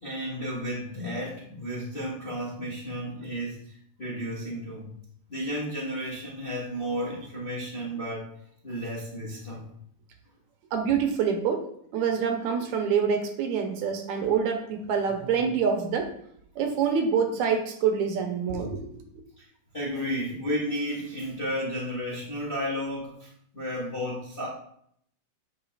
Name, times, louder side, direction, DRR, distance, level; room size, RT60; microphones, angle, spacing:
voice 1, 0.0-4.9 5.3-8.3 8.6-9.6 19.4-19.5 19.7-24.5, equal, 25° left, -7 dB, 1.2 m, -33 dB
voice 2, 10.7-11.6 11.9-16.1 16.6-18.9, right 6 dB, 75° right, 4 dB, 2.1 m, -26 dB
9.0 x 5.5 x 2.4 m, 0.67 s
omnidirectional pair, 3.6 m